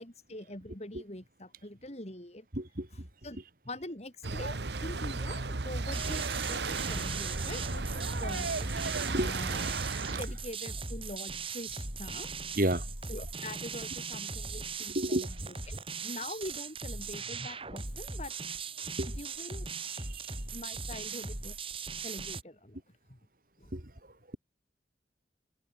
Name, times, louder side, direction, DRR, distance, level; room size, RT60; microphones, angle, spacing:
voice 1, 0.0-2.5 3.2-3.4 3.6-8.6 9.2-9.8 10.1-12.3 13.1-15.3 15.7-18.3 19.1-19.7 20.5-21.6 22.0-22.8 23.1-23.2 23.6-23.7, left 1 dB, 40° left, 4.3 m, -44 dB
voice 2, 2.5-3.1 8.8-9.3 12.1-12.2 12.6-12.9 14.9-15.3 19.0-19.1 19.9-20.3 23.7-23.9, right 1 dB, 50° right, 3.4 m, -32 dB
sound 1, 4.2-10.2, right 3 dB, 75° right, 1.2 m, -34 dB
sound 2, 5.9-22.4, right 4 dB, 30° right, 5.6 m, -39 dB
head